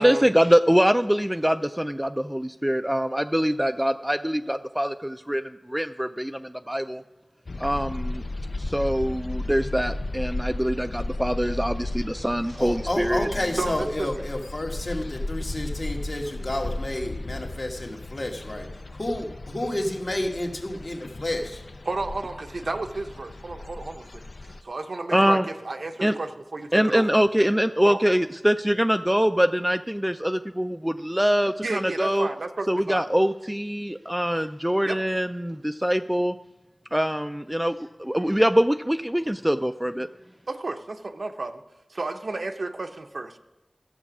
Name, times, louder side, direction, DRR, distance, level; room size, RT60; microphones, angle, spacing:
voice 1, 0.0-7.0 7.6-8.2 8.6-13.3 25.1-25.4 26.0-26.2 26.7-32.3 32.7-36.4 36.9-40.1, equal, 10° right, 0.3 m, -24 dB
sound 1, 7.5-24.6, left 2 dB, 70° left, 0.4 m, -35 dB
voice 2, 12.6-21.6, left 1 dB, 50° left, 1.4 m, -30 dB
voice 3, 13.6-14.1 21.9-27.0 27.8-28.0 31.6-33.1 34.8-35.0 40.5-41.6 41.9-43.4, right 2 dB, 80° right, 0.7 m, -32 dB
13.5 x 6.9 x 6.0 m
wide cardioid pair, 60°, 0 cm